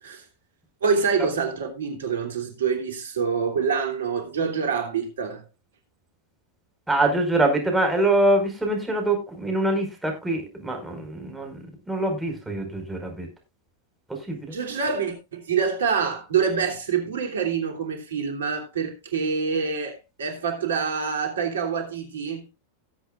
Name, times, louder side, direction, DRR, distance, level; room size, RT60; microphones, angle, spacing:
voice 1, 0.8-5.4 14.5-22.5, right 6 dB, 75° right, 3.1 m, -26 dB
voice 2, 6.9-11.6 11.9-13.3 14.1-14.6, right 1 dB, 5° right, 5.0 m, -24 dB
18.5 x 8.0 x 2.5 m
hypercardioid pair, 95°, 0 cm